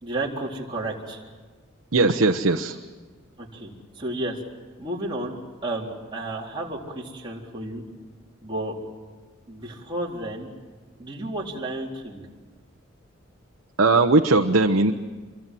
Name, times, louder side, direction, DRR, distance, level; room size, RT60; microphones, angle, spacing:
voice 1, 0.0-1.2 3.4-4.4 4.8-7.8 8.4-8.7 9.5-10.5 11.0-12.3, right 1 dB, 25° right, -3 dB, 3.8 m, -32 dB
voice 2, 1.9-2.8 13.8-14.9, right 3 dB, 75° right, 4 dB, 1.0 m, -19 dB
27.5 x 24.0 x 7.7 m, 1.4 s
head